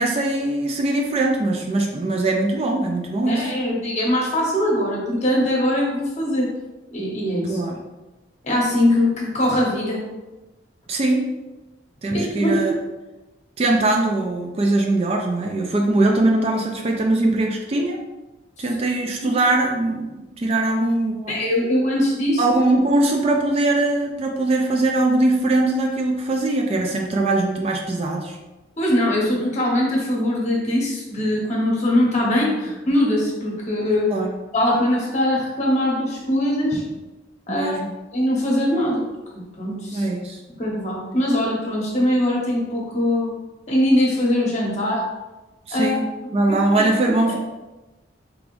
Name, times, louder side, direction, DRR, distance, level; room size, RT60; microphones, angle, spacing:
voice 1, 0.0-3.5 7.5-7.8 10.9-11.2 12.0-12.8 13.6-18.0 18.6-20.1 20.4-21.4 22.4-28.4 34.1-34.3 37.5-37.9 39.9-40.4 45.7-46.0 46.3-47.4, right 2 dB, 30° right, 2 dB, 0.3 m, -21 dB
voice 2, 3.2-6.5 6.9-7.6 8.4-10.0 12.1-12.6 18.6-18.7 21.3-22.4 28.8-34.1 34.5-36.8 37.5-37.8 38.1-39.0 39.6-40.1 40.6-43.3 43.7-45.1 45.7-46.0 46.7-47.2, left 1 dB, 35° left, -3 dB, 0.9 m, -21 dB
3.5 x 3.4 x 2.5 m, 1.1 s
head